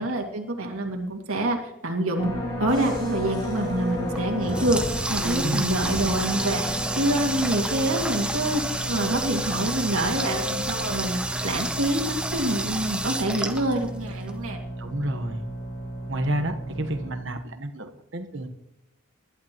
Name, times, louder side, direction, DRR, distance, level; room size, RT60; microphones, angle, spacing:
voice 1, 0.0-2.3 2.6-4.8 5.1-6.7 6.9-14.6, right 1 dB, 80° right, 1 dB, 2.1 m, -26 dB
sound 1, 2.2-17.2, equal, 20° left, 5.4 m, -32 dB
Water tap faucet, 4.1-14.3, right 2 dB, 5° right, 0.8 m, -31 dB
voice 2, 14.8-15.4 16.1-18.5, right 1 dB, 60° right, 8 dB, 1.2 m, -30 dB
20.0 x 11.5 x 3.0 m, 0.82 s
head